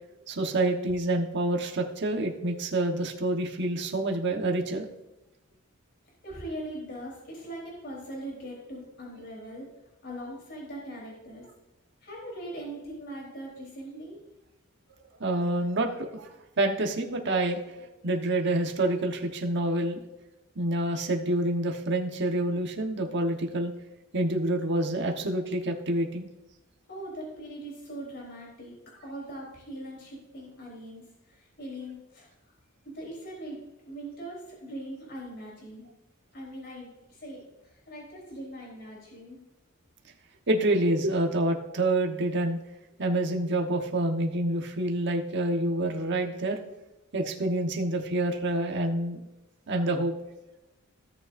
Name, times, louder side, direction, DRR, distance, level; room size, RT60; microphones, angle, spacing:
voice 1, 0.3-4.9 15.2-16.3 16.6-20.0 20.5-23.7 24.1-26.3 40.5-42.6 43.0-46.6 47.1-49.2 49.7-50.1, right 1 dB, 55° right, 3 dB, 1.2 m, -27 dB
voice 2, 6.2-9.7 10.0-11.4 12.0-14.2 26.9-28.7 29.0-32.3 32.8-33.6 33.9-35.8 36.3-37.4 37.9-39.4, right 1 dB, 50° left, -4 dB, 3.8 m, -41 dB
16.5 x 6.8 x 2.6 m, 0.95 s
head